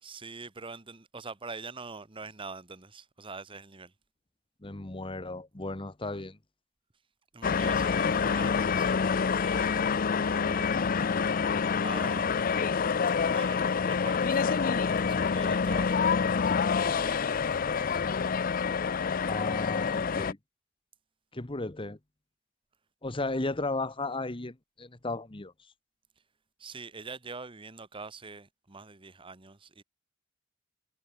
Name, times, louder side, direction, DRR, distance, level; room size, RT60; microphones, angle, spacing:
voice 1, 0.0-3.9 7.3-9.9 10.2-10.9 11.4-12.6 13.3-18.0 26.6-29.8, right 4 dB, 25° right, 1.2 m, -45 dB
voice 2, 4.6-6.4 19.3-20.4 21.3-22.0 23.0-25.5, left 2 dB, 25° left, 1.2 m, -35 dB
sound 1, 7.4-20.3, left 5 dB, 45° left, 0.5 m, -27 dB
head